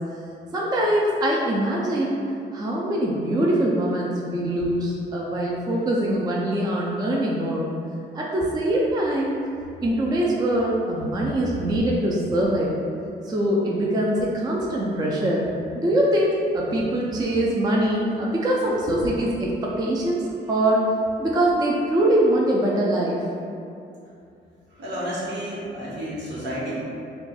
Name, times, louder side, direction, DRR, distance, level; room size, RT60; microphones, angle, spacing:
voice 1, 0.5-2.2 2.5-7.7 8.1-9.3 9.8-12.7 13.3-15.5 15.7-20.2 20.5-20.9 21.2-23.2, right 1 dB, 20° right, -3 dB, 0.4 m, -23 dB
voice 2, 24.8-26.8, equal, 65° right, -6 dB, 1.1 m, -31 dB
2.5 x 2.3 x 4.0 m, 2.6 s
cardioid pair, 100°, 19 cm